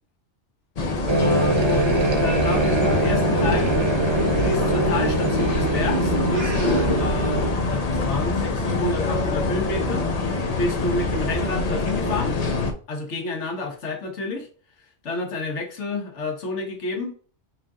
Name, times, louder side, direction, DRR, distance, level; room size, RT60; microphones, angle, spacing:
sound 1, 0.8-12.7, left 3 dB, 45° left, 0.6 m, -24 dB
sound 2, 1.1-7.5, right 3 dB, 35° right, 0.5 m, -23 dB
voice 1, 1.2-3.8 4.4-10.1 10.6-12.4 12.9-14.5 15.0-17.1, left 3 dB, 70° left, 3 dB, 1.4 m, -29 dB
5.6 x 2.5 x 3.6 m, 0.40 s
omnidirectional pair, 1.2 m